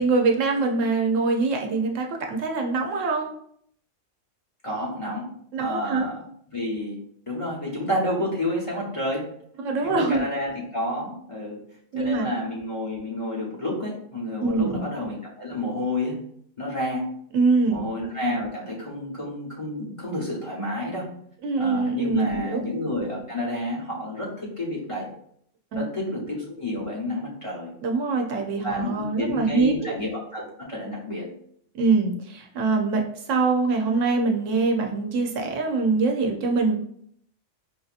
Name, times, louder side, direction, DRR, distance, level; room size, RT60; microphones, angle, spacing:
voice 1, 0.0-3.3 5.5-6.1 9.6-10.2 11.9-12.3 14.4-14.9 17.3-17.9 21.4-22.6 25.7-26.2 27.8-30.0 31.7-36.8, right 3 dB, 85° right, 2 dB, 1.0 m, -24 dB
voice 2, 4.6-5.3 5.6-6.2 6.5-7.0 7.3-9.3 9.8-11.6 12.0-16.2 16.6-17.1 17.7-21.1 21.6-25.1 25.7-27.7 28.6-31.3, left 1 dB, 30° left, -4 dB, 0.9 m, -30 dB
5.2 x 2.6 x 2.4 m, 0.66 s
omnidirectional pair, 1.3 m